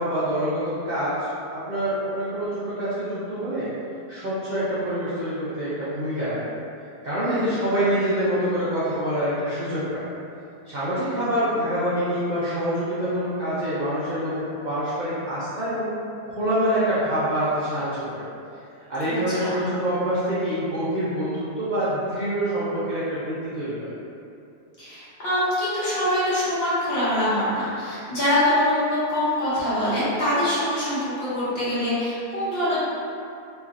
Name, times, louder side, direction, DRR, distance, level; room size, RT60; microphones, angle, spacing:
voice 1, 0.0-3.7 4.1-6.4 7.0-10.0 10.7-16.0 16.3-18.2 18.9-23.9, equal, 85° right, -13 dB, 0.4 m, -26 dB
voice 2, 24.8-32.8, left 1 dB, 45° left, -12 dB, 1.0 m, -24 dB
3.0 x 2.6 x 2.5 m, 2.6 s
omnidirectional pair, 1.7 m